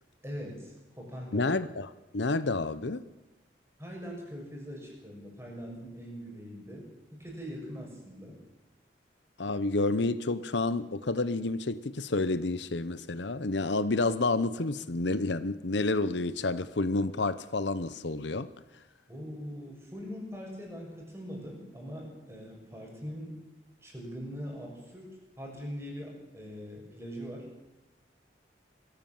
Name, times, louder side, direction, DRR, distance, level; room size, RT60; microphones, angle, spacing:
voice 1, 0.2-1.5 3.8-8.4 19.1-23.4 23.8-25.1 25.4-27.5, equal, 15° right, 0 dB, 6.7 m, -42 dB
voice 2, 1.3-3.0 9.4-18.5, left 3 dB, 75° left, 14 dB, 0.9 m, -29 dB
23.0 x 15.5 x 7.3 m, 1.0 s
head